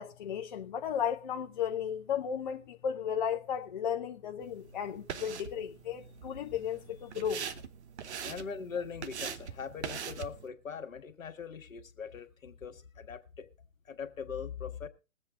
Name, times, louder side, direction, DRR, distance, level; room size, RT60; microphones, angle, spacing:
voice 1, 0.0-7.5, left 8 dB, 35° left, 0.6 m, -34 dB
sound 1, 4.4-10.5, right 7 dB, 50° right, 1.0 m, -43 dB
voice 2, 8.2-13.5 13.8-14.9, left 6 dB, 70° left, 1.5 m, -41 dB
21.0 x 7.9 x 3.6 m
figure-of-eight pair, 140°, 42 cm